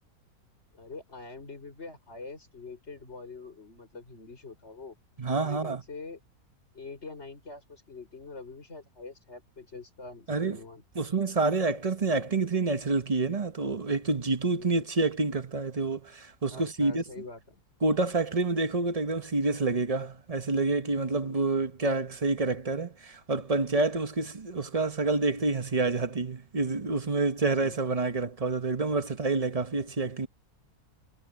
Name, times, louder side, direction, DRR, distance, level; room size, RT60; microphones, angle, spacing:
voice 1, 0.7-5.0 5.4-6.2 6.7-10.8 14.5-14.9 16.5-17.6 21.2-21.5 27.4-27.8, left 3 dB, 45° left, 5.9 m, -45 dB
voice 2, 5.2-5.8 10.3-10.6 10.9-17.1 17.8-30.3, right 3 dB, 25° right, 1.1 m, -28 dB
omnidirectional pair, 1.6 m